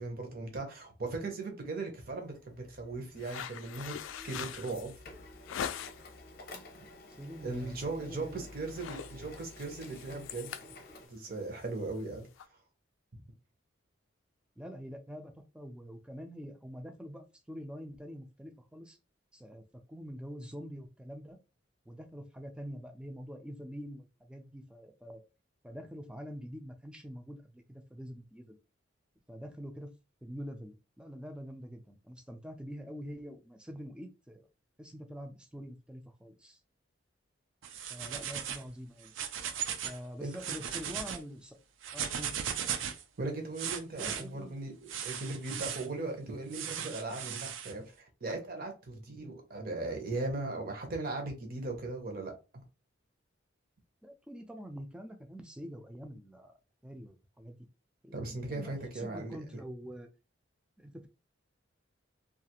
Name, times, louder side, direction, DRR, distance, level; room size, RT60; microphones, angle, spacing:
voice 1, 0.0-4.0 4.2-4.9 7.4-10.5 11.1-12.3 40.2-40.3 43.2-52.6 58.1-59.4, right 2 dB, 50° right, 0.7 m, -38 dB
Printer, 1.9-11.1, left 2 dB, 50° left, 0.7 m, -52 dB
sound 1, 3.2-6.2 6.6-7.0 7.3-7.5 7.9-8.3 8.5-12.4, left 8 dB, 85° left, 0.3 m, -42 dB
voice 2, 7.2-8.5 14.6-19.0 19.3-19.6 19.9-21.4 21.9-25.2 25.6-28.6 29.3-29.9 30.2-34.5 34.8-36.6 37.9-39.1 39.8-41.6 41.9-42.3 44.0-44.6 54.0-56.5 56.8-57.6 58.0-60.1 60.8-61.1, equal, 5° right, 0.3 m, -45 dB
sound 2, 37.6-38.7 39.0-40.0 40.3-41.2 41.8-43.0 43.6-44.2 44.9-45.9 46.5-47.7, right 8 dB, 80° right, 0.4 m, -37 dB
2.4 x 2.4 x 2.8 m
head